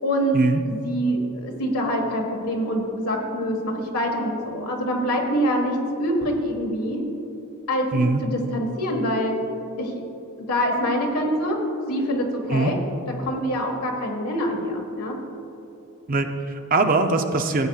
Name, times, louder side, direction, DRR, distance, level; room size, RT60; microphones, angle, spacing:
voice 1, 0.0-0.3 0.7-7.0 7.7-9.4 9.8-10.0 10.4-11.6 11.9-12.8 13.2-15.1, equal, 80° left, 1 dB, 1.5 m, -25 dB
voice 2, 16.1-17.7, right 3 dB, 40° right, 6 dB, 0.6 m, -22 dB
15.5 x 8.9 x 2.4 m, 2.9 s
head